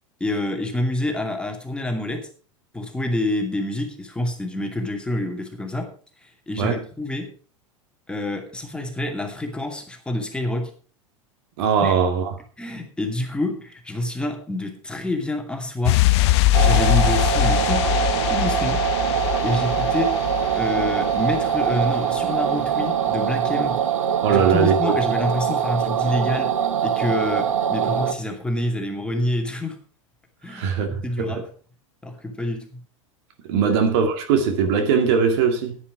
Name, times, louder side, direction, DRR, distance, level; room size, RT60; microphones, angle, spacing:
voice 1, 0.2-2.3 2.7-5.9 6.2-7.3 8.1-10.7 11.8-12.0 12.6-16.1 16.6-17.9 18.3-18.9 19.4-20.2 20.6-23.8 24.3-29.8 30.4-31.4 32.0-32.8 33.6-33.8, left 1 dB, 5° left, 2.4 m, -27 dB
voice 2, 11.6-12.3 24.2-25.0 30.5-31.4 33.5-35.8, right 6 dB, 55° right, 2.1 m, -20 dB
sound 1, 15.8-22.4 22.6-22.7, left 15 dB, 55° left, 0.7 m, -22 dB
sound 2, 16.5-28.1, right 8 dB, 75° right, 1.1 m, -23 dB
10.0 x 10.0 x 4.8 m
figure-of-eight pair, 85°, 17 cm